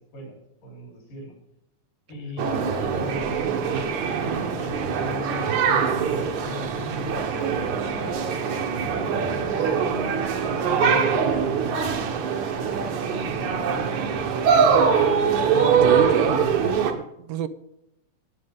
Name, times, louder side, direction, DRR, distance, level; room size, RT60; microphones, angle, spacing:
voice 1, 0.1-1.3 2.1-8.7 9.0-15.2, equal, 70° left, 0 dB, 5.8 m, -38 dB
sound 1, 2.4-16.9, right 6 dB, 65° right, 2.5 m, -23 dB
voice 2, 15.8-17.5, right 9 dB, 80° right, 12 dB, 2.4 m, -28 dB
19.5 x 7.9 x 3.7 m, 0.84 s
omnidirectional pair, 4.0 m